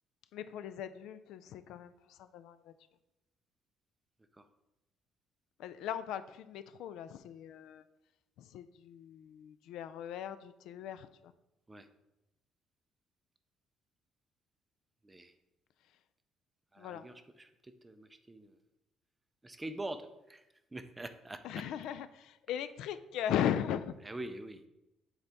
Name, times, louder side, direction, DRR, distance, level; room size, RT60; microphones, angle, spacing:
voice 1, 0.3-2.8 5.6-7.8 8.4-11.3 16.8-17.0 21.4-24.0, left 10 dB, 75° left, 13 dB, 0.3 m, -38 dB
voice 2, 16.7-18.6 19.4-20.4 20.7-21.4 24.0-24.6, right 2 dB, 10° right, 9 dB, 0.4 m, -44 dB
8.0 x 4.0 x 3.5 m, 0.94 s
cardioid pair, 155°, 0 cm